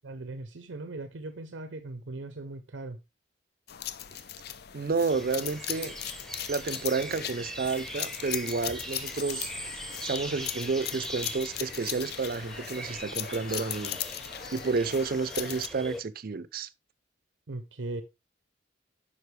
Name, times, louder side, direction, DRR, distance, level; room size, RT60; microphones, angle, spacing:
voice 1, 0.0-3.0 17.5-18.0, right 2 dB, 90° right, 0.7 m, -39 dB
sound 1, 3.7-15.7, left 11 dB, 60° left, 0.5 m, -38 dB
voice 2, 4.7-6.0 6.5-9.5 10.0-14.0 14.5-16.7, right 4 dB, 50° right, 0.5 m, -30 dB
sound 2, 5.1-16.0, equal, 5° left, 0.8 m, -41 dB
9.4 x 5.5 x 3.2 m
head